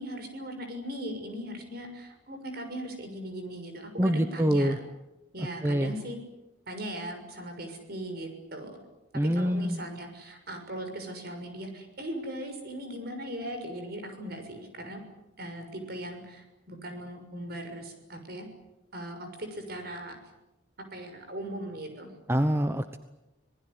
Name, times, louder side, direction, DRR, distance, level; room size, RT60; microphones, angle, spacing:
voice 1, 0.0-4.8 5.3-6.2 6.7-8.9 9.3-15.0 15.4-18.5 18.9-20.2 20.9-22.1, right 1 dB, 55° right, 6 dB, 6.6 m, -39 dB
voice 2, 4.0-4.8 5.6-5.9 9.1-9.8 22.3-23.0, equal, 15° right, 9 dB, 1.0 m, -25 dB
26.5 x 20.0 x 10.0 m, 0.97 s
head